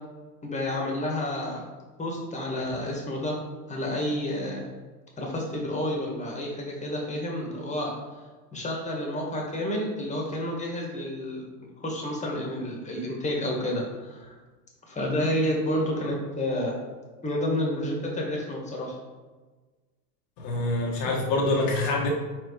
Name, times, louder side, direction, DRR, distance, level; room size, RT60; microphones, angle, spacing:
voice 1, 0.4-1.6 2.0-3.4 3.7-4.6 5.2-7.9 8.5-11.4 11.8-14.3 14.9-16.8 17.2-19.0, left 1 dB, 15° left, -1 dB, 1.7 m, -30 dB
voice 2, 20.4-22.1, left 2 dB, 45° left, -2 dB, 1.3 m, -25 dB
4.5 x 4.3 x 4.8 m, 1.3 s
hypercardioid pair, 100°, 48 cm